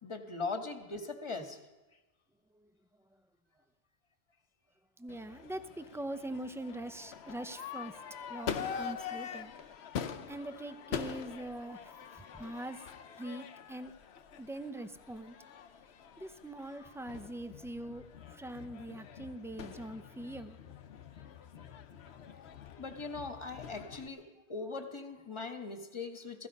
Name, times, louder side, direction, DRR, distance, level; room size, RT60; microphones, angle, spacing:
voice 1, 0.0-1.6 22.8-26.5, left 3 dB, 25° left, 6 dB, 1.4 m, -40 dB
voice 2, 5.0-7.9 8.3-9.5 10.3-11.8 12.1-12.8 13.2-13.9 14.4-15.4 16.2-18.0 18.3-20.6, right 1 dB, 5° right, 10 dB, 0.4 m, -42 dB
Crowd / Fireworks, 5.1-24.1, left 7 dB, 70° left, 1.0 m, -44 dB
17.5 x 15.0 x 5.3 m, 1.2 s
omnidirectional pair, 1.1 m